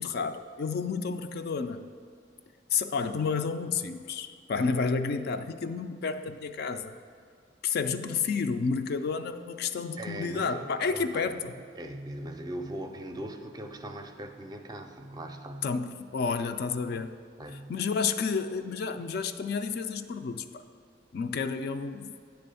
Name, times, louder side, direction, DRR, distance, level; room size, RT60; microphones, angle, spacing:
voice 1, 0.0-1.8 2.7-6.9 7.6-11.5 15.6-17.1 17.7-20.6 21.1-22.1, left 5 dB, 55° left, 9 dB, 0.4 m, -30 dB
voice 2, 10.0-11.5 11.8-15.7 16.9-17.1 17.4-17.7, right 1 dB, 20° right, 5 dB, 0.5 m, -40 dB
10.0 x 3.4 x 6.8 m, 2.2 s
head